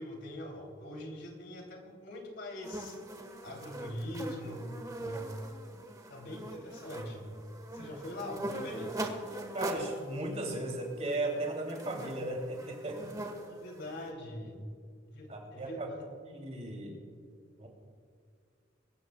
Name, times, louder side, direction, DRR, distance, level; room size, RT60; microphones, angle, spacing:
voice 1, 0.0-3.0 3.4-4.7 5.0-5.3 6.1-7.4 7.7-9.1 13.0-14.6 15.0-16.1, left 1 dB, 65° left, 1 dB, 2.9 m, -43 dB
sound 1, 2.6-14.1, right 1 dB, 20° right, 1.3 m, -42 dB
voice 2, 9.5-13.1 15.3-15.9 16.3-17.0 17.6-17.7, right 2 dB, 35° right, 1 dB, 2.8 m, -36 dB
23.0 x 14.0 x 2.3 m, 2.2 s
head